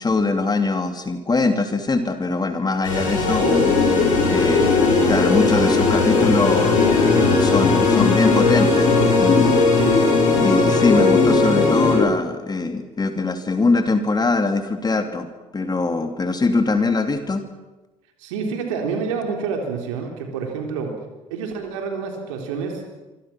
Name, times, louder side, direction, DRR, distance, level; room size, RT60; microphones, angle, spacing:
voice 1, 0.0-3.4 4.3-4.7 5.0-9.7 10.4-15.3 15.5-17.4, left 3 dB, 25° left, 6 dB, 2.8 m, -22 dB
sound 1, 2.8-12.0, left 3 dB, 85° left, 7.9 m, -20 dB
voice 2, 3.3-3.7 4.3-4.7 9.7-10.0 18.2-20.9 21.3-22.8, right 5 dB, 75° right, 2 dB, 3.7 m, -28 dB
sound 2, 3.4-12.1, left 4 dB, 50° left, 4.4 m, -20 dB
26.0 x 24.5 x 6.1 m, 1.1 s
hypercardioid pair, 55°, 16 cm